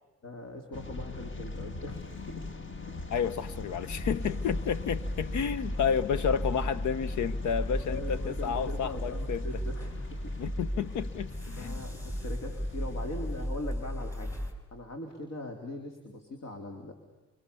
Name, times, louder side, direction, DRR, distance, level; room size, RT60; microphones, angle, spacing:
voice 1, 0.2-2.5 7.9-10.4 10.8-10.9 11.6-14.4 14.7-16.9, left 1 dB, 60° left, 4 dB, 3.7 m, -41 dB
sound 1, 0.7-13.5, left 3 dB, 40° left, 2.0 m, -42 dB
voice 2, 3.1-9.4 10.4-11.7, left 7 dB, 75° left, 17 dB, 1.0 m, -31 dB
sound 2, 3.9-14.5, equal, 10° left, 5.3 m, -35 dB
28.0 x 27.0 x 7.0 m, 1.1 s
cardioid pair, 90°, 30 cm